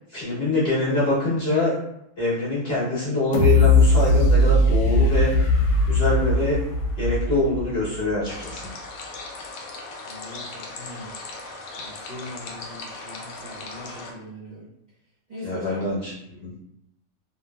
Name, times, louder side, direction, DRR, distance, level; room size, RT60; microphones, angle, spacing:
voice 1, 0.1-1.7 2.2-5.3 5.9-6.6 7.0-8.7 15.4-16.5, left 1 dB, 45° left, -9 dB, 1.2 m, -24 dB
sound 1, 3.3-8.2 8.7-8.8, left 2 dB, 85° left, 1.2 m, -19 dB
sound 2, 8.3-14.1, left 3 dB, 70° left, 1.0 m, -38 dB
voice 2, 10.0-11.1 11.7-14.7 15.3-15.9 16.4-16.5, equal, 45° right, -9 dB, 0.8 m, -40 dB
2.9 x 2.4 x 2.2 m, 0.79 s
omnidirectional pair, 1.6 m